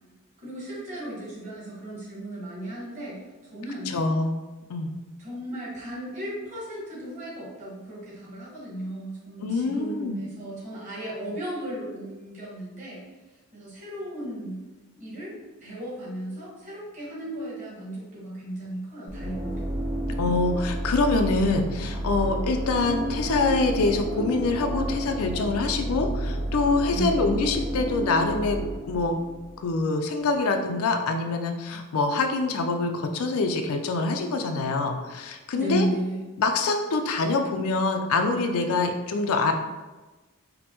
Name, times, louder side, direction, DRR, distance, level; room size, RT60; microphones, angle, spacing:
voice 1, 0.4-3.2 3.5-3.9 5.2-13.0 13.5-14.6 15.0-15.3 15.6-19.7 26.9-27.4 35.5-36.3, right 1 dB, 35° right, -6 dB, 1.3 m, -35 dB
voice 2, 3.9-4.4 4.7-4.9 9.4-10.2 20.2-28.6 28.9-29.2 29.6-35.9 36.4-39.5, left 3 dB, 70° left, 5 dB, 0.4 m, -25 dB
sound 1, 19.1-29.8, right 1 dB, 55° right, 1.5 m, -31 dB
5.1 x 2.0 x 2.9 m, 1.2 s
head